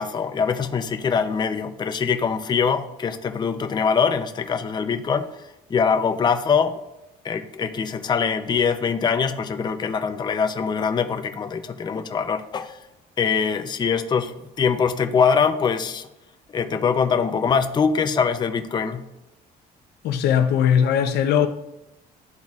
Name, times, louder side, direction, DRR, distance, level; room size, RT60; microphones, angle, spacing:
voice 1, 0.0-5.3 5.7-6.8 7.2-12.8 13.2-16.1 16.5-19.0, left 6 dB, 25° left, 0.5 m, -23 dB
voice 2, 20.0-21.5, left 8 dB, 75° left, 0.7 m, -19 dB
12.0 x 4.0 x 2.4 m
cardioid pair, 110°, 17 cm